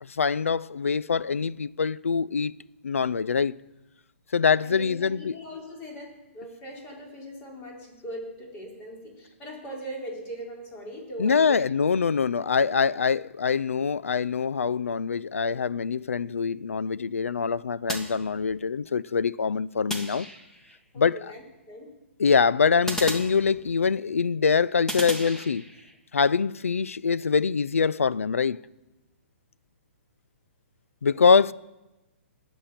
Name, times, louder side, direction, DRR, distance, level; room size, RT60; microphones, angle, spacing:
voice 1, 0.0-2.5 2.8-3.6 4.3-5.4 11.2-20.3 21.0-21.2 22.2-25.7 26.1-28.6 31.0-31.5, left 5 dB, 85° left, 0.4 m, -24 dB
voice 2, 4.6-11.7 20.9-21.9 31.1-31.2, equal, 30° left, 4.4 m, -40 dB
sound 1, 17.9-18.8 19.9-20.8 22.9-24.0 24.9-25.9, equal, 5° left, 1.6 m, -36 dB
19.5 x 7.1 x 5.9 m
hypercardioid pair, 130°, 7 cm